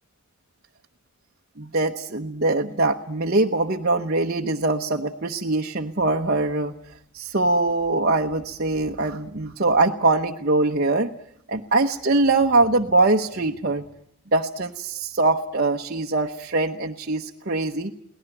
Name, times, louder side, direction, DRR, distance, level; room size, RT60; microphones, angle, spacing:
voice 1, 1.6-6.7 7.1-11.1 11.5-13.8 14.3-17.9, right 2 dB, 45° right, 1 dB, 0.9 m, -22 dB
23.0 x 18.0 x 9.1 m, 0.69 s
head